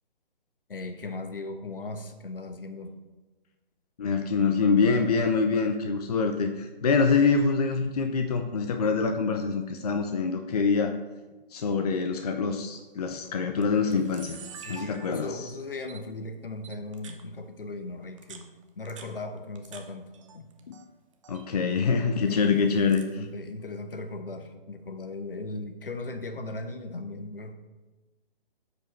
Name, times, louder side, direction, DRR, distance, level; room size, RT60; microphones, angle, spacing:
voice 1, 0.7-3.0 14.4-18.5 18.8-20.5 22.1-22.7 23.1-27.5, left 2 dB, 70° left, 8 dB, 1.0 m, -38 dB
voice 2, 4.0-10.9 11.5-14.4 14.7-15.3 20.7-20.8 21.3-23.0, left 5 dB, 45° left, 6 dB, 0.5 m, -25 dB
Camera, 12.7-13.0 13.6-13.7 13.9-15.5 15.9-16.0 16.6-17.2 18.0-19.8 20.1-20.8 21.1-21.5 22.3-23.1, right 7 dB, 35° right, 0.7 m, -47 dB
13.0 x 5.1 x 3.2 m, 1.2 s
figure-of-eight pair, 140°, 29 cm